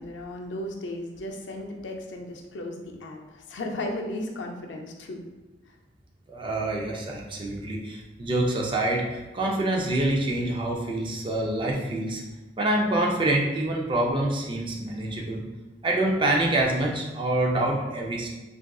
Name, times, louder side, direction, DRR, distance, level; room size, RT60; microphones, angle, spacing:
voice 1, 0.0-5.3, left 1 dB, 90° left, 2 dB, 0.5 m, -35 dB
voice 2, 6.3-12.2 12.6-15.4 15.8-18.3, right 1 dB, 30° right, -1 dB, 0.4 m, -26 dB
3.6 x 2.4 x 2.3 m, 1.1 s
head